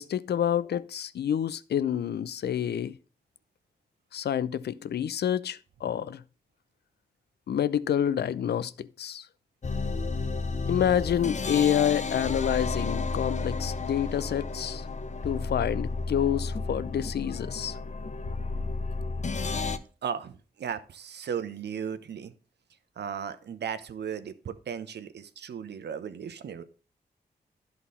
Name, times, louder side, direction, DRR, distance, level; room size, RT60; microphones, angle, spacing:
voice 1, 0.0-2.9 4.1-6.2 7.5-9.3 10.7-14.9 15.2-17.8, left 9 dB, 70° left, 0.5 m, -28 dB
sound 1, 9.6-19.8, left 3 dB, 40° left, 0.9 m, -32 dB
voice 2, 20.0-22.3 23.0-26.6, right 7 dB, 75° right, 0.8 m, -36 dB
11.0 x 4.0 x 5.5 m
supercardioid pair, 45°, 18 cm